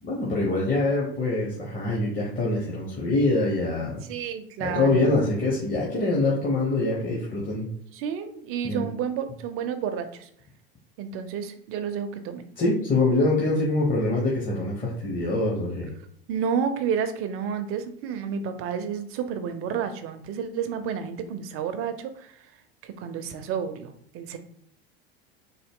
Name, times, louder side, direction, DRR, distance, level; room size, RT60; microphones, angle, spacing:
voice 1, 0.0-4.0 4.6-7.7 8.6-8.9 12.6-15.9, left 2 dB, 30° left, -4 dB, 1.1 m, -24 dB
voice 2, 4.1-5.1 7.9-10.3 11.0-12.5 16.3-22.3 22.8-24.4, right 7 dB, 45° right, 9 dB, 0.6 m, -30 dB
3.9 x 2.1 x 3.6 m, 0.69 s
hypercardioid pair, 95°, 30 cm